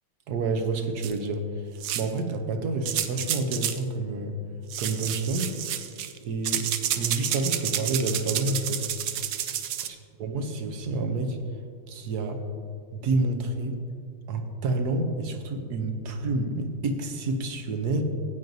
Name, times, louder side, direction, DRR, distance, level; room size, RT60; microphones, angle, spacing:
voice 1, 0.3-1.7 1.9-4.4 4.8-5.7 6.2-6.7 7.0-8.9 10.2-11.4 11.9-12.4 12.9-13.8 14.3-18.0, right 3 dB, 60° right, 5 dB, 1.1 m, -29 dB
sound 1, 1.0-1.1 1.8-2.2 2.9-3.8 4.7-6.2 6.4-9.9, right 10 dB, 85° right, 0.8 m, -30 dB
15.5 x 9.1 x 2.7 m, 2.4 s
omnidirectional pair, 2.3 m